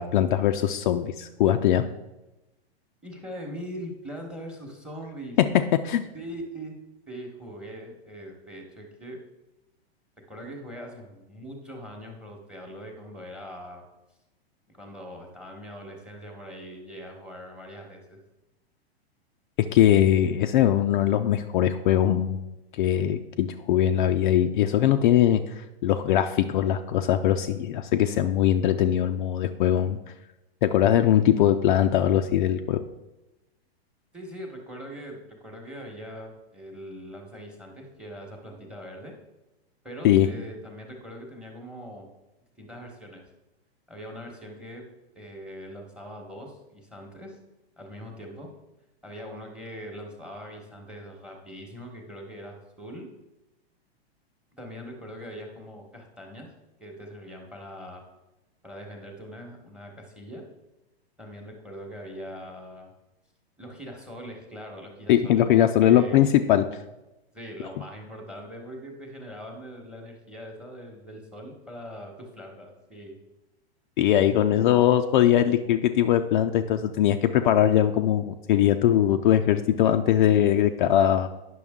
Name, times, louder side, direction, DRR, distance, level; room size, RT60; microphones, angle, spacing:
voice 1, 0.0-1.9 5.4-5.5 5.8-6.1 19.7-22.5 22.7-30.0 30.6-32.8 40.0-40.3 65.1-66.7 74.0-81.3, left 11 dB, 50° left, 6 dB, 0.4 m, -21 dB
voice 2, 3.0-5.4 6.1-6.8 7.1-9.2 10.3-13.8 14.7-18.2 34.1-39.1 39.8-42.1 42.6-43.2 43.9-44.8 45.1-47.4 47.8-48.5 49.0-53.1 54.6-56.5 56.8-58.0 58.6-60.4 61.2-62.9 63.6-66.3 67.3-73.2, equal, 5° right, 2 dB, 1.1 m, -41 dB
9.3 x 6.1 x 3.6 m, 1.0 s
hypercardioid pair, 145°, 32 cm